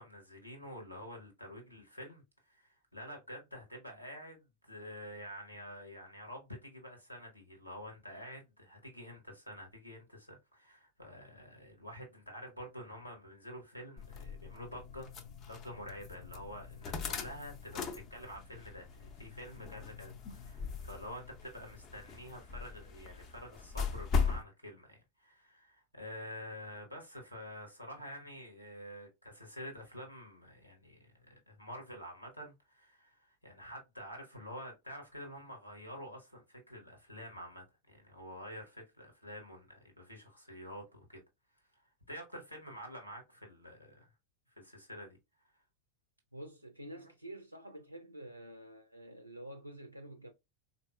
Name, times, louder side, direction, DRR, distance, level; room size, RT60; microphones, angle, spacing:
voice 1, 0.0-15.2 15.5-41.2 41.7-41.8 42.1-44.1 44.6-45.2 46.9-47.1, equal, 85° left, 1.1 m, -48 dB
sound 1, 14.0-24.4, left 5 dB, 35° left, 0.5 m, -39 dB
voice 2, 46.3-50.3, right 1 dB, 90° right, 0.3 m, -48 dB
4.1 x 2.5 x 2.2 m
figure-of-eight pair, 90°, 0 cm